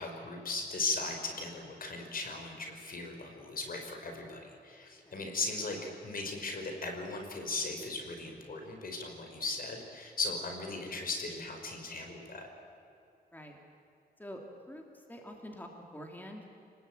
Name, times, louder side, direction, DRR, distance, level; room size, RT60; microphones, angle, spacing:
voice 1, 0.0-5.8 6.0-12.5, left 3 dB, 55° left, 3 dB, 5.4 m, -37 dB
voice 2, 14.7-16.6, equal, 10° left, 2 dB, 3.1 m, -46 dB
29.0 x 20.0 x 9.2 m, 2.6 s
cardioid pair, 105°, 17 cm